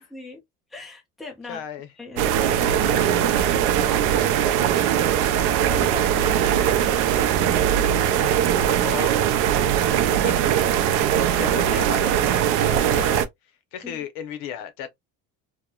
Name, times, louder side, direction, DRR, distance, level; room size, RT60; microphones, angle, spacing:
voice 1, 0.7-1.6 2.0-3.3 5.7-7.3 13.8-14.0, left 3 dB, ahead, 0.5 m, -39 dB
voice 2, 1.5-1.9 4.4-5.2 8.4-10.6 11.0-13.3 13.7-15.0, left 9 dB, 80° left, 0.7 m, -36 dB
sound 1, 2.2-13.3, right 10 dB, 75° right, 0.5 m, -20 dB
2.8 x 2.1 x 2.2 m
cardioid pair, 165°, 33 cm